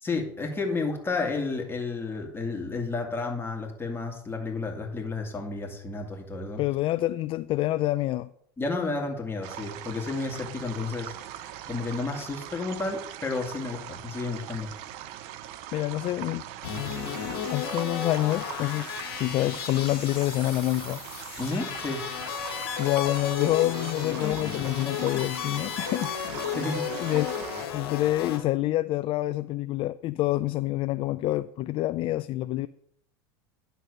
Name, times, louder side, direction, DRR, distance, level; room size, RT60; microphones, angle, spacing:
voice 1, 0.0-6.6 8.6-14.7 21.4-22.0 26.5-26.9, left 3 dB, 20° left, 2.2 m, -31 dB
voice 2, 6.6-8.3 15.7-16.4 17.3-18.9 19.2-21.0 22.8-26.3 27.0-27.3 27.7-32.7, left 16 dB, 45° left, 0.3 m, -27 dB
sound 1, 9.4-27.7, right 12 dB, 60° right, 0.7 m, -41 dB
sound 2, 16.6-28.4, left 8 dB, 80° left, 1.9 m, -34 dB
10.5 x 4.1 x 6.5 m
hypercardioid pair, 90°, 13 cm